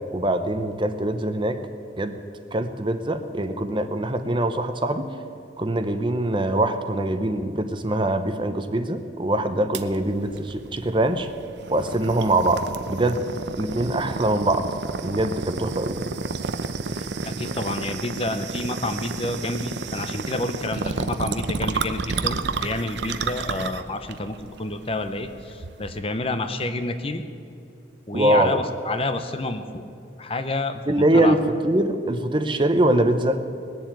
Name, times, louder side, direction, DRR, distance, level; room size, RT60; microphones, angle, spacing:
voice 1, 0.1-1.6 2.0-2.2 2.5-5.1 5.6-11.3 11.7-13.2 13.6-14.7 15.0-16.0 28.1-28.6 30.9-33.5, right 1 dB, 25° right, 8 dB, 0.8 m, -23 dB
sound 1, 9.7-26.0, right 4 dB, 65° right, 0.7 m, -31 dB
voice 2, 16.9-27.2 28.1-29.8 30.2-31.4, left 2 dB, 30° left, 8 dB, 0.8 m, -29 dB
20.5 x 7.3 x 9.0 m, 2.6 s
head